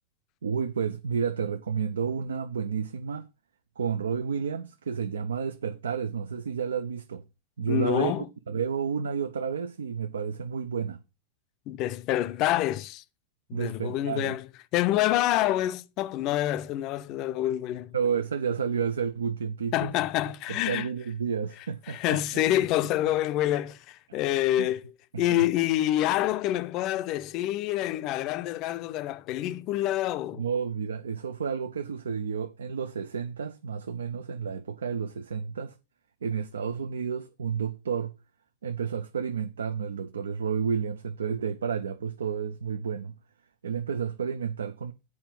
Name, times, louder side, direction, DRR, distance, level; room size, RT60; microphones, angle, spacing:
voice 1, 0.4-3.3 3.8-7.2 7.6-11.0 13.5-14.3 17.9-19.9 20.7-22.2 24.1-24.2 24.6-24.7 25.1-25.5 30.4-35.8 36.2-38.1 38.6-43.1 43.6-44.9, right 6 dB, 70° right, 0.5 m, -31 dB
voice 2, 7.7-8.3 11.7-13.0 13.5-14.5 14.7-17.9 19.7-20.9 21.9-24.8 25.2-30.4, left 14 dB, 40° left, 0.5 m, -27 dB
8.7 x 4.7 x 5.9 m
figure-of-eight pair, 90°, 0 cm